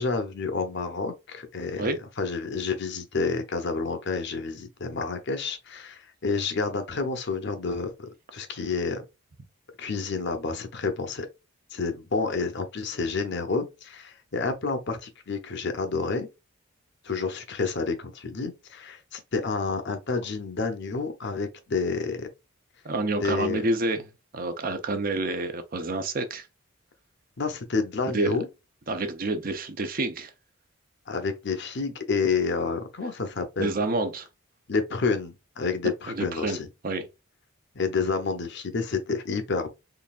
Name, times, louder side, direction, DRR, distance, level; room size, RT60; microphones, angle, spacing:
voice 1, 0.0-9.0 9.8-11.3 11.7-16.3 17.0-22.3 23.2-23.7 27.4-28.5 31.1-33.7 34.7-36.7 37.7-39.7, left 4 dB, 55° left, 0.7 m, -29 dB
voice 2, 22.8-24.1 24.3-26.5 28.1-28.3 28.9-30.3 33.6-34.3 36.1-36.6 36.8-37.1, right 2 dB, 40° right, 0.6 m, -28 dB
3.9 x 3.3 x 2.4 m
head